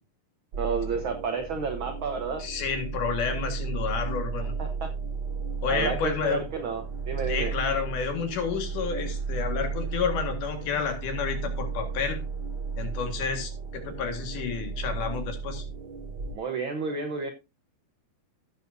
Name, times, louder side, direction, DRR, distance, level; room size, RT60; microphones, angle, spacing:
sound 1, 0.5-16.4, right 5 dB, 50° right, 1.5 m, -34 dB
voice 1, 0.6-2.4 4.4-4.9 5.7-7.5 16.3-17.3, right 5 dB, 85° right, 6 dB, 1.1 m, -31 dB
voice 2, 2.4-4.5 5.6-6.5 7.3-12.2 12.8-13.5 13.8-15.6, left 6 dB, 75° left, 6 dB, 3.2 m, -30 dB
16.0 x 7.0 x 2.7 m, 0.26 s
omnidirectional pair, 3.7 m